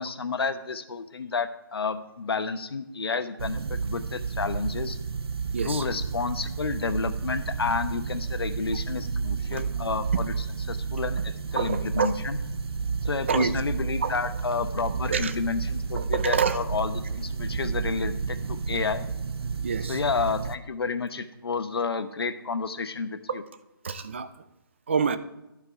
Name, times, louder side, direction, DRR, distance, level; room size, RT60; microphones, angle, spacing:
voice 1, 0.0-5.0 5.6-12.4 13.0-19.0 19.9-23.4, left 4 dB, 75° left, 10 dB, 1.0 m, -30 dB
sound 1, 3.4-20.6, right 5 dB, 80° right, 0.6 m, -31 dB
voice 2, 5.5-5.8 9.5-9.6 11.6-12.1 13.3-13.5 14.0-14.1 15.1-15.3 16.0-16.6 19.6-20.0 23.3-23.4 23.8-24.3 24.9-25.2, right 6 dB, 30° right, 12 dB, 0.5 m, -27 dB
11.5 x 4.7 x 5.7 m, 0.95 s
hypercardioid pair, 175°, 13 cm